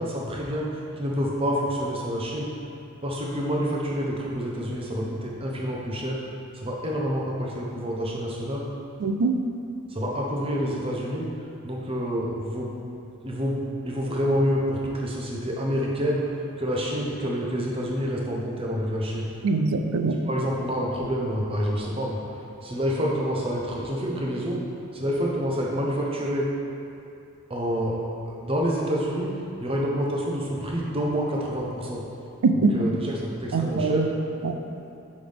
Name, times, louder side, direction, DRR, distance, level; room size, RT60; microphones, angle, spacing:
voice 1, 0.0-2.5 3.0-6.2 6.5-8.7 9.9-11.3 11.6-12.7 13.2-16.2 16.6-19.3 20.2-22.2 22.6-24.6 24.9-26.5 27.5-28.0 28.3-29.3 29.6-32.0 32.5-34.1, equal, 25° right, -3 dB, 0.8 m, -28 dB
voice 2, 9.0-9.3 19.4-20.2 32.4-32.8 33.5-34.1 34.4-34.5, right 4 dB, 90° right, 7 dB, 0.4 m, -22 dB
5.9 x 5.2 x 3.4 m, 2.6 s
head